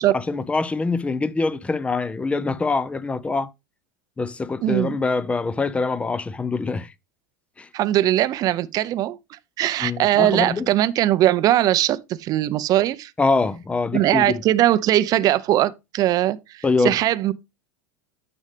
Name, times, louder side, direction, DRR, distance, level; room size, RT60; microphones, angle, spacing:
voice 1, 0.1-3.5 4.2-6.9 7.6-7.7 9.8-10.7 13.2-14.4 16.6-17.0, left 3 dB, 15° left, 0.7 m, -24 dB
voice 2, 4.6-5.0 7.7-13.1 13.9-17.3, right 13 dB, 40° right, 0.7 m, -20 dB
9.9 x 6.3 x 3.4 m
supercardioid pair, 115°, 9 cm